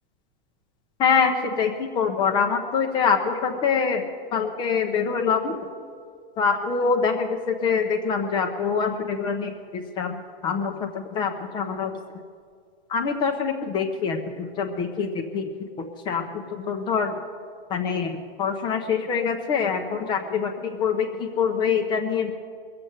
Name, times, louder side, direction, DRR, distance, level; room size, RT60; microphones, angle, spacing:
voice 1, 1.0-4.0 4.3-5.6 6.4-10.2 10.4-11.9 12.9-17.1 17.7-18.1 18.4-22.3, left 6 dB, 15° left, 5 dB, 0.5 m, -25 dB
21.0 x 7.6 x 7.9 m, 2.2 s
supercardioid pair, 160°, 30 cm